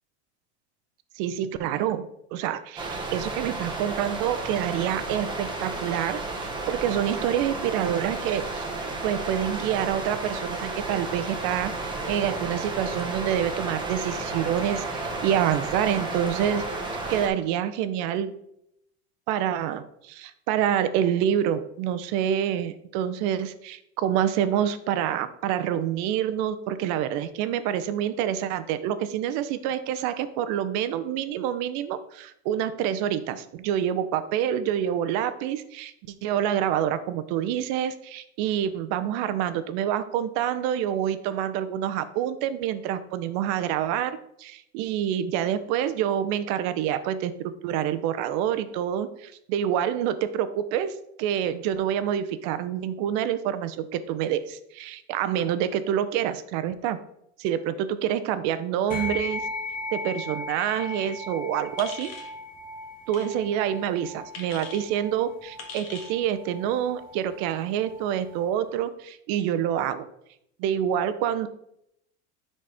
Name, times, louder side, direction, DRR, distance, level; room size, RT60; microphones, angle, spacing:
voice 1, 1.2-8.7 9.0-11.7 12.1-16.7 17.1-18.3 19.3-35.9 36.2-47.3 47.6-57.0 57.4-59.5 59.9-62.1 63.1-70.1 70.6-71.5, right 10 dB, 55° right, 12 dB, 0.7 m, -27 dB
sound 1, 2.8-17.3, right 3 dB, 15° right, 1.2 m, -32 dB
sound 2, 58.9-68.6, left 2 dB, 25° left, 1.6 m, -38 dB
sound 3, 61.8-62.3 63.1-63.3 64.3-64.8 65.6-66.1, left 5 dB, 45° left, 1.6 m, -40 dB
10.5 x 4.2 x 3.4 m, 0.76 s
supercardioid pair, 130°, 34 cm